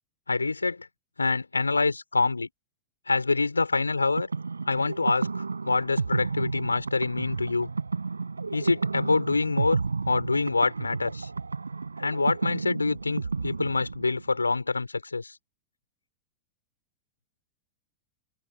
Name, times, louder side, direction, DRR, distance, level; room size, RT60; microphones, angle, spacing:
voice 1, 0.3-0.9 1.2-2.5 3.1-4.3 4.7-7.7 8.5-9.8 10.1-11.3 12.0-15.4, left 3 dB, 80° left, 5.0 m, -26 dB
sound 1, 3.9-14.4, right 4 dB, 75° right, 6.9 m, -32 dB
open air
figure-of-eight pair, 90°, 0 cm